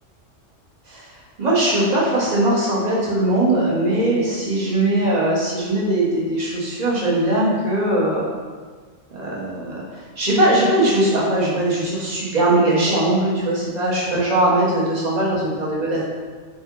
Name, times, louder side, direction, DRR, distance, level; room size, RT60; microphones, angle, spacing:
voice 1, 1.4-8.2 9.1-9.8 10.2-16.0, right 1 dB, 35° right, -6 dB, 1.0 m, -20 dB
4.2 x 2.7 x 3.7 m, 1.5 s
omnidirectional pair, 1.3 m